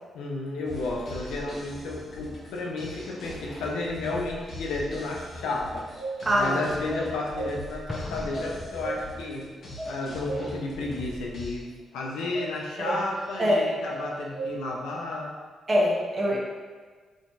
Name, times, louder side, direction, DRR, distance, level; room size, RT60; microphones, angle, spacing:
voice 1, 0.1-5.9 6.3-9.5 9.9-15.3, left 2 dB, 85° left, -1 dB, 0.4 m, -32 dB
sound 1, 0.6-11.5, left 1 dB, 60° left, 0.9 m, -42 dB
sound 2, 5.9-6.5 6.9-7.8 8.3-9.3 9.8-10.7 12.3-13.4 13.9-14.8, right 3 dB, 5° right, 1.4 m, -36 dB
voice 2, 6.2-6.6 12.8-13.0 13.4-13.6 15.7-16.4, equal, 35° right, -3 dB, 0.7 m, -23 dB
Explosion, 7.9-9.5, left 1 dB, 15° left, 0.4 m, -40 dB
2.9 x 2.7 x 2.2 m, 1.5 s
supercardioid pair, 55°, 0 cm